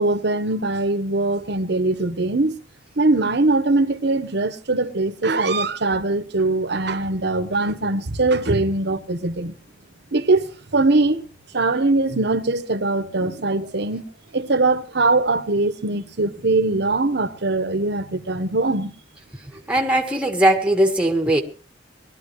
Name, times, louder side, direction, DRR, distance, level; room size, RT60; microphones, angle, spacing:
voice 1, 0.0-2.6 3.0-9.5 10.1-10.5 10.7-11.2 11.5-14.0 14.3-18.9, right 2 dB, 65° right, 1.2 m, -21 dB
voice 2, 19.5-21.4, right 1 dB, 5° right, 1.6 m, -19 dB
19.5 x 12.5 x 3.2 m
head